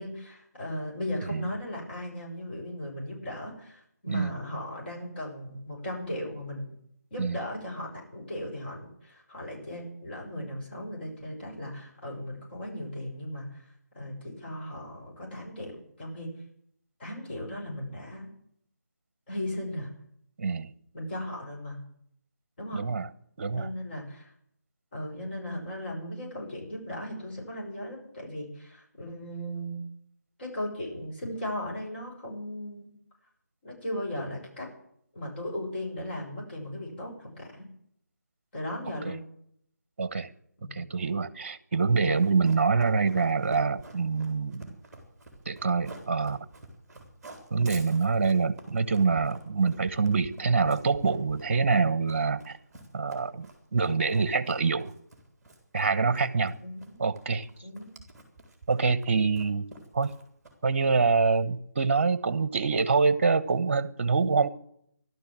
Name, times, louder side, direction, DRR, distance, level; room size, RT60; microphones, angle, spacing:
voice 1, 0.0-6.7 7.1-13.6 13.9-16.3 17.0-18.3 19.3-19.9 20.9-21.8 22.6-22.8 23.5-24.3 24.9-29.8 30.4-32.9 33.6-34.7 35.1-37.7 38.5-39.2 40.6-40.8 56.6-57.0 57.6-57.9, left 1 dB, 35° left, 6.4 m, -37 dB
voice 2, 4.1-4.4 7.2-7.4 20.4-20.7 22.7-23.1 23.4-23.7 39.0-39.1 40.0-40.3 40.7-44.7 45.4-46.4 47.5-52.6 52.9-53.5 53.7-54.9 55.7-56.6 57.0-57.5 58.7-59.6 59.9-60.1 60.6-64.5, right 4 dB, 40° right, 1.1 m, -25 dB
Run, 42.1-60.8, right 2 dB, 5° right, 3.4 m, -49 dB
15.5 x 12.5 x 7.6 m
figure-of-eight pair, 165°, 10 cm